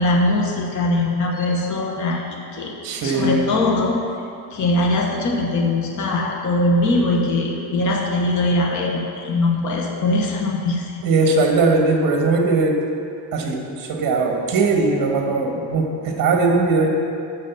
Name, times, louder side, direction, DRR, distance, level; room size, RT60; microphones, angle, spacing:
voice 1, 0.0-2.7 3.0-4.0 4.5-11.0, left 2 dB, 40° left, -1 dB, 1.2 m, -21 dB
voice 2, 2.8-3.4 11.0-12.9 13.3-16.9, right 3 dB, 45° right, 2 dB, 1.5 m, -19 dB
12.0 x 4.1 x 6.9 m, 2.5 s
cardioid pair, 155°, 48 cm